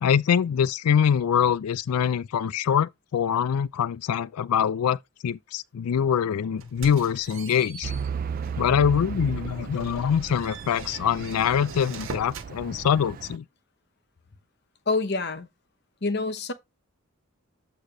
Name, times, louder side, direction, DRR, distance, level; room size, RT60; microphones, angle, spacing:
voice 1, 0.0-7.9 8.6-13.4, left 8 dB, 85° left, 0.4 m, -24 dB
sound 1, 6.6-8.7 9.1-9.3 9.7-12.5, right 4 dB, 65° right, 1.3 m, -42 dB
Truck / Idling, 7.8-13.4, right 6 dB, 40° right, 0.3 m, -35 dB
voice 2, 14.9-15.5 16.0-16.5, left 3 dB, 50° left, 0.8 m, -26 dB
8.0 x 2.8 x 4.9 m
head